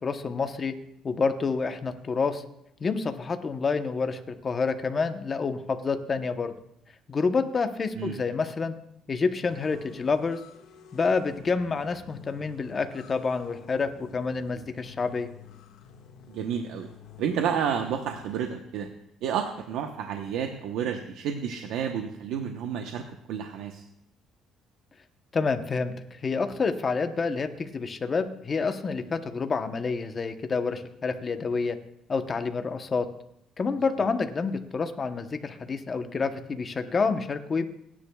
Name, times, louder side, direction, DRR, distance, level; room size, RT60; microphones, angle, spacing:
voice 1, 0.0-0.7 1.0-2.4 2.8-6.5 7.1-8.7 9.1-10.4 10.9-15.3 25.3-31.8 32.1-33.1 33.6-37.7, left 4 dB, 30° left, 8 dB, 0.9 m, -28 dB
sound 1, 9.4-18.4, left 8 dB, 80° left, 1.6 m, -50 dB
voice 2, 16.3-16.9 17.2-18.9 19.2-23.0 23.3-23.8, right 8 dB, 85° right, 4 dB, 0.9 m, -30 dB
29.5 x 9.9 x 2.3 m, 0.77 s
cardioid pair, 140°, 0 cm